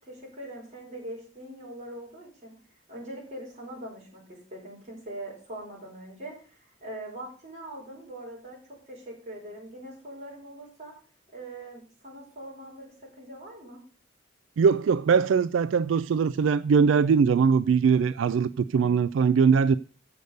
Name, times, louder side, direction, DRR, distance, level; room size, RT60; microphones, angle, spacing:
voice 1, 0.0-2.5 2.9-10.9 11.3-13.8, right 1 dB, 40° right, 5.2 m, -42 dB
voice 2, 14.6-19.7, right 6 dB, 80° right, 0.3 m, -21 dB
7.9 x 6.8 x 6.5 m
head